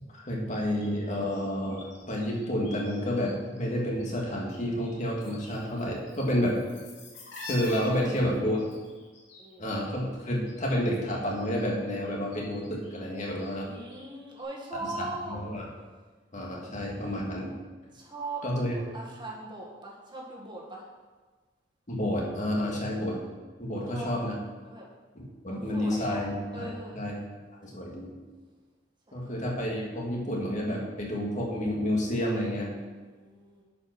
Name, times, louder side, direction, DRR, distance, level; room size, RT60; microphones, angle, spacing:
voice 1, 0.1-6.6 7.5-8.6 9.6-13.7 15.0-15.7 16.3-17.5 18.4-18.7 21.9-23.2 23.6-24.3 25.2-27.1 27.6-28.1 29.1-32.7, equal, 40° left, -2 dB, 2.1 m, -30 dB
sound 1, 0.5-3.3 3.6-4.6 4.8-10.8 11.1-14.1 14.4-14.5, left 3 dB, 80° left, 2.7 m, -47 dB
voice 2, 7.9-8.5 9.4-9.7 13.5-15.4 16.6-16.7 17.9-20.8 23.7-24.1 24.6-24.9 25.5-26.3 26.5-27.0 27.7-28.0 29.1-29.4 32.9-33.6, right 2 dB, 25° right, -3 dB, 1.8 m, -41 dB
9.5 x 5.3 x 6.1 m, 1.3 s
head